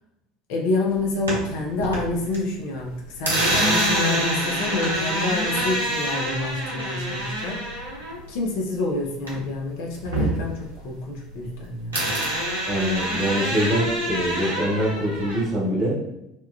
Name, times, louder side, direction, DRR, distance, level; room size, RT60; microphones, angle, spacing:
voice 1, 0.5-7.7 8.3-12.0, left 2 dB, 60° left, 0 dB, 0.6 m, -28 dB
sound 1, 1.0-2.4 2.7-9.6 9.9-11.6 11.9-15.4, right 1 dB, 85° right, 0.7 m, -26 dB
voice 2, 12.7-16.0, equal, 35° right, -5 dB, 1.3 m, -24 dB
2.9 x 2.3 x 2.2 m, 0.86 s
figure-of-eight pair, 70°, 0 cm